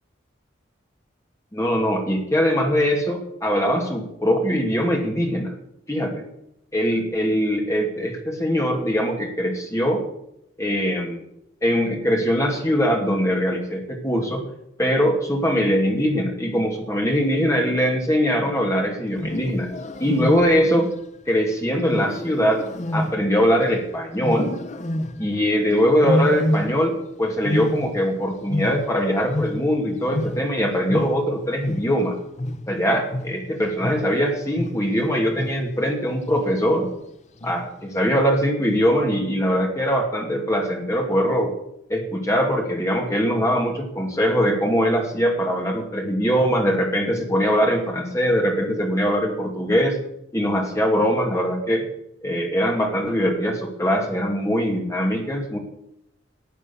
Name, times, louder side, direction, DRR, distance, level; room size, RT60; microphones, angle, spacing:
voice 1, 1.5-5.5 5.9-6.2 6.7-10.0 10.6-11.3 11.6-14.4 14.8-19.7 20.0-20.9 21.3-22.6 22.9-24.5 25.2-32.2 32.7-36.9 37.4-41.5 41.9-50.0 50.3-51.9 52.2-55.6, equal, 15° left, 1 dB, 2.5 m, -22 dB
Wild animals, 19.1-20.8 21.9-23.8 24.2-25.4 26.0-27.1 27.3-29.8 30.1-35.0 35.4-35.8 36.3-36.7 37.4-37.9, left 1 dB, 35° left, 0.8 m, -28 dB
13.0 x 8.6 x 8.5 m, 0.79 s
head